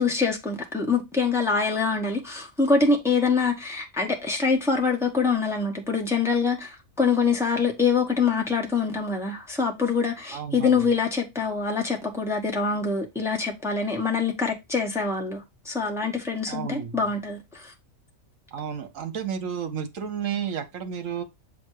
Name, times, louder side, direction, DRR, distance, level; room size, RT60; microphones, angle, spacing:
voice 1, 0.0-17.7, left 4 dB, ahead, 1.1 m, -25 dB
voice 2, 10.3-10.9 16.5-17.0 18.5-21.2, right 8 dB, 65° right, 1.3 m, -32 dB
7.1 x 2.9 x 4.6 m
omnidirectional pair, 1.5 m